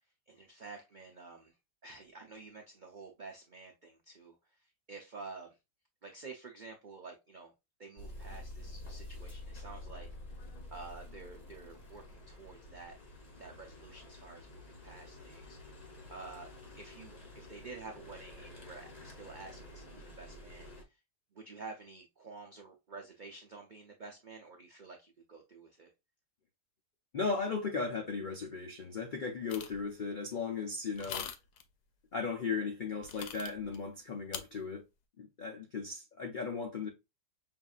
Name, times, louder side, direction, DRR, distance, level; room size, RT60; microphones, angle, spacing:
voice 1, 0.3-1.5 1.8-5.6 6.0-7.5 7.8-10.1 10.7-13.0 13.4-16.5 16.8-21.0 21.3-25.9, right 3 dB, 80° right, 0.4 m, -50 dB
sound 1, 8.0-20.8, left 1 dB, 35° left, 0.7 m, -49 dB
voice 2, 27.1-31.3 32.1-34.8 35.2-36.9, left 4 dB, 90° left, 0.4 m, -36 dB
sound 2, 29.5-29.8 31.0-31.6 33.0-33.8 34.3-34.4, left 8 dB, 75° left, 1.1 m, -41 dB
5.6 x 2.6 x 2.3 m
omnidirectional pair, 1.8 m